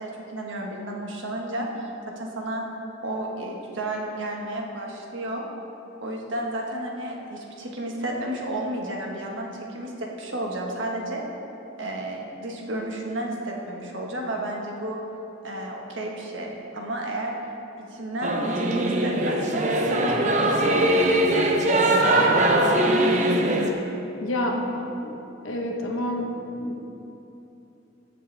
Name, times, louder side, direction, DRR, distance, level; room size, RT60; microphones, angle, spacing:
voice 1, 0.0-1.9 2.2-2.6 3.0-5.5 6.0-11.2 11.8-15.0 15.4-17.3 17.8-22.2, right 1 dB, 70° right, 0 dB, 1.3 m, -32 dB
Singing / Musical instrument, 18.2-23.7, right 1 dB, 35° right, 0.7 m, -21 dB
voice 2, 24.2-25.2 25.4-26.3 26.6-26.9, left 1 dB, 80° left, 2 dB, 1.1 m, -28 dB
15.5 x 6.7 x 3.4 m, 2.9 s
head